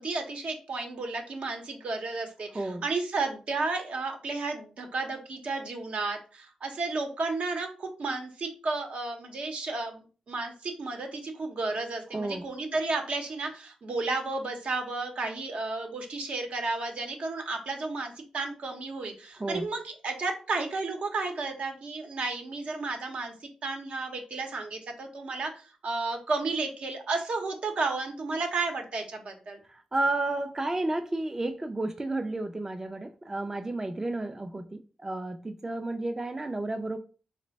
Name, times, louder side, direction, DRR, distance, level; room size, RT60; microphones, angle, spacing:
voice 1, 0.0-10.0 10.3-23.3 23.6-29.6, right 3 dB, 65° right, 4 dB, 0.8 m, -32 dB
voice 2, 12.1-12.5 19.4-19.6 29.7-37.0, right 2 dB, 25° right, 6 dB, 0.4 m, -32 dB
3.3 x 2.1 x 4.0 m, 0.37 s
cardioid pair, 70°, 2 cm